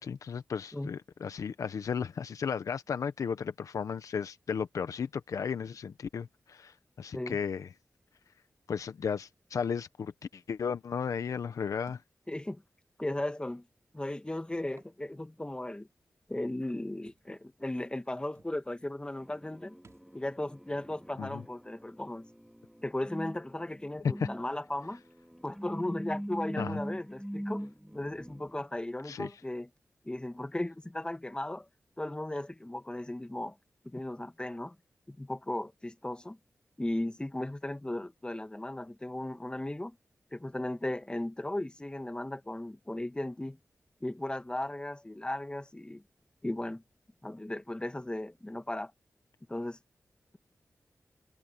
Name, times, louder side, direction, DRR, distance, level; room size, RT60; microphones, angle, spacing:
voice 1, 0.0-7.7 8.7-12.0 21.2-21.4 24.0-24.3 26.6-26.8 29.0-29.3, left 6 dB, 85° left, 1.0 m, -34 dB
Thump thud, 11.9-12.1 13.1-13.3 14.6-15.0 15.4-15.5 17.0-17.3 18.0-18.1 18.3-18.6 19.8-20.1, right 4 dB, 60° right, 6.1 m, -59 dB
voice 2, 12.3-12.6 13.0-13.6 13.9-15.9 16.3-19.8 20.1-22.3 22.8-25.0 25.4-29.7 30.0-31.7 32.0-33.6 33.8-34.7 35.1-36.4 36.8-40.0 40.3-43.6 44.0-46.0 46.4-46.8 47.2-48.9 49.5-49.8, left 1 dB, 15° left, 1.7 m, -36 dB
sound 1, 19.2-28.6, equal, ahead, 3.8 m, -42 dB
cardioid pair, 55°, 5 cm